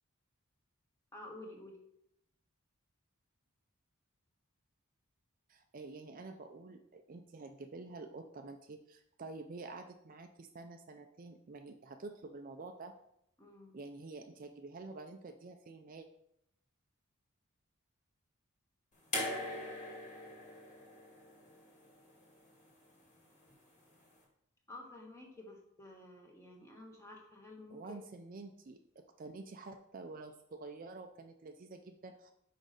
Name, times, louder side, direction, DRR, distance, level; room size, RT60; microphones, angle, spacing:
voice 1, 1.1-1.8 13.4-13.8 24.7-28.0, left 1 dB, 15° left, 0 dB, 1.3 m, -51 dB
voice 2, 5.5-12.9 13.7-16.1 27.7-32.3, right 3 dB, 40° right, 6 dB, 0.4 m, -48 dB
sound 1, 19.1-22.3 23.5-23.6, left 1 dB, 35° left, 2.2 m, -41 dB
6.3 x 5.1 x 5.0 m, 0.78 s
head